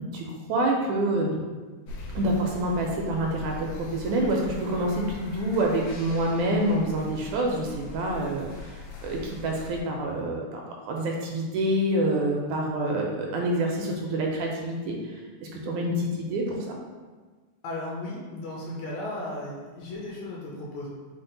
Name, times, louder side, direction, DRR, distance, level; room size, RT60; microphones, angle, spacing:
voice 1, 0.0-1.4 2.2-8.5 9.0-15.2 15.5-16.8, right 1 dB, 80° right, 0 dB, 1.8 m, -27 dB
sound 1, 1.9-9.8, left 3 dB, 90° left, 2.3 m, -41 dB
voice 2, 17.6-20.9, left 1 dB, 70° left, -4 dB, 1.9 m, -35 dB
5.9 x 2.1 x 3.8 m, 1.4 s
omnidirectional pair, 3.6 m